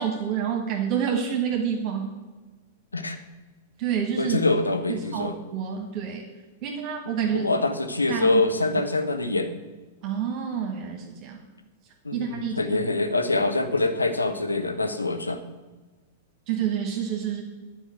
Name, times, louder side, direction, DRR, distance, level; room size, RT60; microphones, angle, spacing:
voice 1, 0.0-2.1 3.8-4.4 4.9-6.2 6.6-7.5 8.1-8.4 10.0-11.4 12.1-12.5 16.5-17.4, right 8 dB, 40° right, 2 dB, 1.7 m, -28 dB
voice 2, 4.2-5.3 7.3-9.5 12.0-15.4, left 2 dB, 85° left, 6 dB, 1.0 m, -25 dB
9.9 x 5.3 x 8.0 m, 1.2 s
figure-of-eight pair, 100°, 0 cm